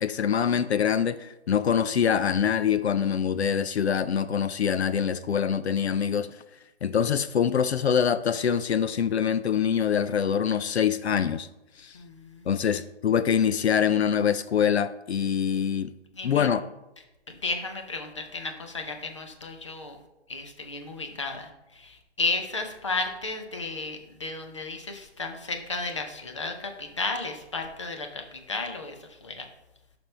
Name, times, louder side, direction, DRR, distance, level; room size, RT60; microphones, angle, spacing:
voice 1, 0.0-6.4 6.8-11.5 11.8-12.0 12.5-15.9 16.2-16.6, left 8 dB, 75° left, 0.6 m, -24 dB
voice 2, 11.9-12.5 16.1-16.5 17.3-20.0 20.3-29.5, left 3 dB, 25° left, 0.8 m, -33 dB
11.0 x 6.0 x 3.3 m
hypercardioid pair, 180°, 33 cm